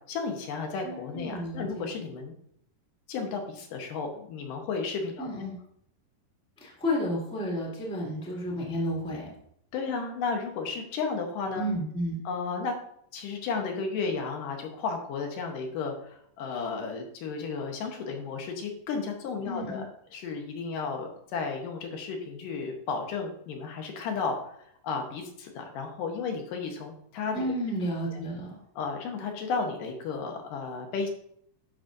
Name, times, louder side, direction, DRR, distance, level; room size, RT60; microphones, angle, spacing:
voice 1, 0.1-2.3 3.1-5.3 9.7-11.7 12.3-12.7 13.1-19.9 20.1-24.5 24.8-27.4 28.1-28.2 28.8-31.1, left 4 dB, 80° left, 3 dB, 2.6 m, -33 dB
voice 2, 0.8-1.9 5.2-5.5 6.6-9.3 11.5-12.2 19.4-19.8 27.3-28.6, equal, ahead, -4 dB, 1.2 m, -32 dB
12.0 x 5.1 x 2.6 m, 0.70 s
omnidirectional pair, 3.9 m